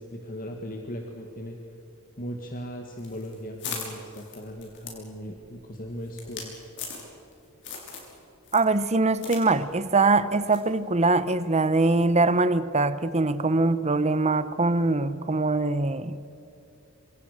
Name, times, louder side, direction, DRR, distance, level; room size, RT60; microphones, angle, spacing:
voice 1, 0.0-1.6 2.2-6.6, equal, 40° left, 2 dB, 2.0 m, -38 dB
sound 1, 3.0-7.3 7.6-8.1 8.4-9.4 9.7-9.8 10.5-10.7, left 5 dB, 55° left, 5.9 m, -39 dB
voice 2, 8.5-16.2, right 3 dB, 30° right, 14 dB, 1.0 m, -23 dB
27.0 x 26.5 x 6.7 m, 2.7 s
head